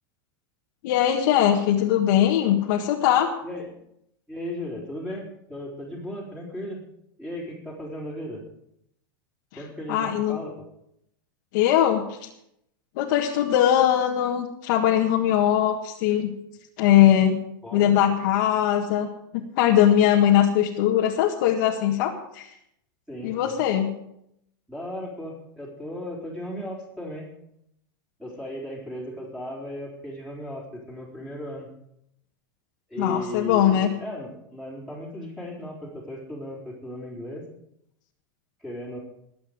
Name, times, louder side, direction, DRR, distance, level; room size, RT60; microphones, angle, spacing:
voice 1, 0.8-3.3 9.9-10.4 11.5-12.1 13.0-16.3 16.8-17.4 17.7-19.1 19.3-22.5 23.2-23.9 33.0-33.9, left 11 dB, 60° left, -1 dB, 1.7 m, -21 dB
voice 2, 3.4-3.8 4.3-6.8 7.2-8.4 9.5-10.5 17.6-17.9 23.1-23.6 24.7-27.3 28.2-31.7 32.9-37.5 38.6-39.0, left 1 dB, 5° right, -5 dB, 4.1 m, -36 dB
21.0 x 8.3 x 5.1 m, 0.77 s
supercardioid pair, 145°, 12 cm